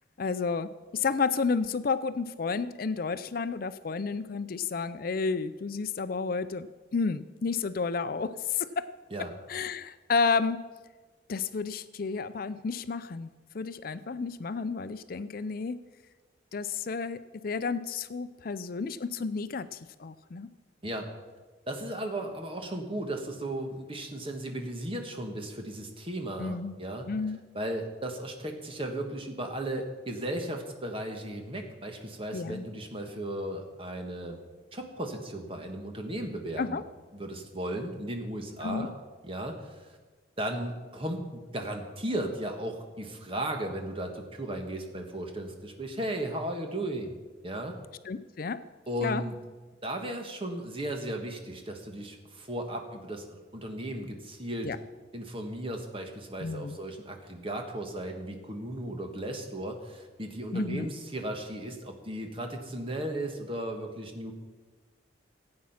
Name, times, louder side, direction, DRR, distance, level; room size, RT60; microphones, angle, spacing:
voice 1, 0.2-6.7 6.9-8.9 9.5-10.6 11.3-13.3 13.5-15.8 16.5-20.5 26.4-26.8 27.1-27.4 32.3-32.7 36.6-36.8 38.6-38.9 48.1-48.6 49.0-49.2 54.6-54.8 56.4-56.8 60.5-60.9, left 4 dB, 50° left, 13 dB, 0.5 m, -31 dB
voice 2, 21.7-27.1 27.5-34.4 34.7-36.8 37.1-38.9 39.2-40.0 40.4-47.2 47.4-47.8 48.9-49.3 49.8-54.7 55.1-64.3, right 1 dB, 30° right, 4 dB, 1.6 m, -35 dB
16.5 x 8.6 x 5.7 m, 1.3 s
head